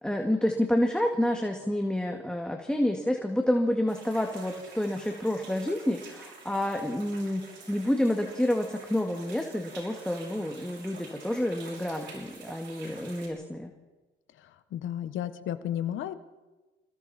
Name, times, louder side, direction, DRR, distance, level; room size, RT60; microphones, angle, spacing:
voice 1, 0.0-13.7, left 1 dB, 5° left, 2 dB, 2.1 m, -29 dB
sound 1, 3.9-13.3, right 4 dB, 65° right, 6.3 m, -48 dB
voice 2, 14.4-16.1, left 10 dB, 80° left, 11 dB, 1.3 m, -33 dB
28.0 x 21.0 x 4.4 m, 1.2 s
cardioid pair, 90°, 20 cm